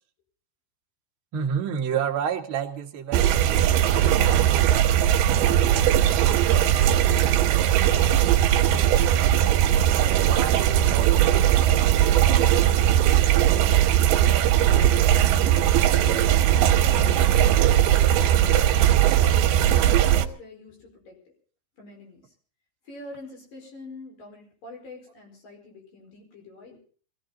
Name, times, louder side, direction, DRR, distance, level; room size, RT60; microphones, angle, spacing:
voice 1, 1.3-5.7 6.3-9.2 9.4-12.6, right 7 dB, 50° right, 1 dB, 1.7 m, -34 dB
sound 1, 3.1-20.3, right 11 dB, 75° right, 2.7 m, -19 dB
voice 2, 14.8-15.4 16.0-18.7 19.1-21.2 21.8-22.3 22.9-26.8, left 2 dB, 55° left, 1 dB, 6.3 m, -43 dB
23.0 x 15.5 x 4.0 m, 0.43 s
omnidirectional pair, 4.9 m